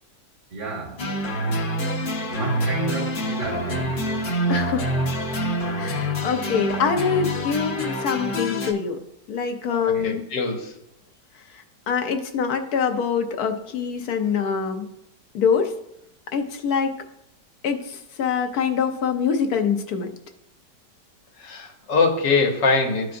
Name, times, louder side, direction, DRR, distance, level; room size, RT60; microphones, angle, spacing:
voice 1, 0.5-1.0 2.3-4.0 9.7-10.2, right 3 dB, 75° right, 2.2 m, -32 dB
sound 1, 1.0-8.7, equal, 45° left, 0.7 m, -26 dB
voice 2, 4.5-4.9 5.8-9.0 9.3-10.2 11.5-14.9 15.3-15.7 16.3-17.0 17.6-20.1, left 6 dB, 70° left, 1.1 m, -24 dB
voice 3, 9.9-10.7 21.4-23.2, left 4 dB, 85° left, 1.7 m, -23 dB
13.0 x 4.6 x 2.5 m
omnidirectional pair, 1.9 m